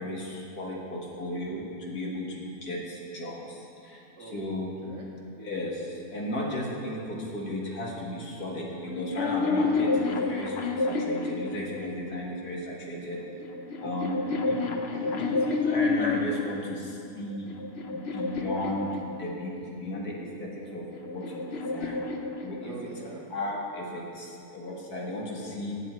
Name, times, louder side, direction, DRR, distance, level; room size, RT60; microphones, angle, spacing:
voice 1, 0.0-4.7 5.4-13.2 13.8-14.2 14.5-14.6 15.1-15.2 15.6-17.5 17.9-18.9 19.2-22.0 22.4-22.7 23.3-25.8, left 1 dB, 70° left, -3 dB, 2.3 m, -35 dB
sound 1, 8.8-12.2 13.1-16.5 17.2-19.6 20.6-23.0, left 3 dB, 50° left, 1.0 m, -29 dB
voice 2, 13.7-14.1 14.6-15.2 22.5-23.2, right 4 dB, 50° right, -3 dB, 1.3 m, -44 dB
19.0 x 7.5 x 4.5 m, 2.7 s
omnidirectional pair, 1.7 m